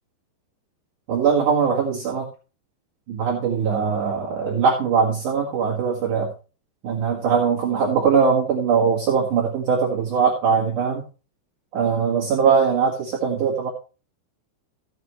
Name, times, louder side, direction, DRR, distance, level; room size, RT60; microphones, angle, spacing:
voice 1, 1.1-2.3 3.1-6.3 6.8-11.0 11.7-13.7, right 6 dB, 55° right, -3 dB, 2.7 m, -21 dB
16.0 x 7.0 x 3.1 m, 0.35 s
omnidirectional pair, 5.3 m